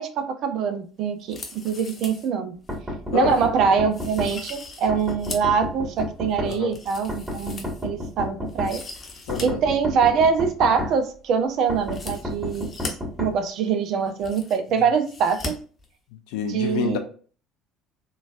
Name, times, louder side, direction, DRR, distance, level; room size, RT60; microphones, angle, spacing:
voice 1, 0.0-1.4 1.6-2.5 3.1-8.8 9.4-15.5 16.5-17.0, right 6 dB, 55° right, 0.5 m, -24 dB
sound 1, 1.2-2.3 2.7-2.8 3.3-3.5 3.9-5.6 6.0-8.1 8.5-9.4 9.7-9.8 11.8-12.9 13.7-13.8 14.0-14.7 15.0-15.5 15.8-15.9, left 3 dB, 35° left, 0.8 m, -38 dB
sound 2, 2.7-4.3 4.9-6.5 7.1-8.7 9.3-10.9 11.7-13.3, left 1 dB, 10° right, 1.5 m, -30 dB
voice 2, 6.4-6.8 9.3-9.6 16.3-17.0, left 7 dB, 65° left, 0.4 m, -27 dB
3.9 x 2.3 x 2.4 m
figure-of-eight pair, 60°, 0 cm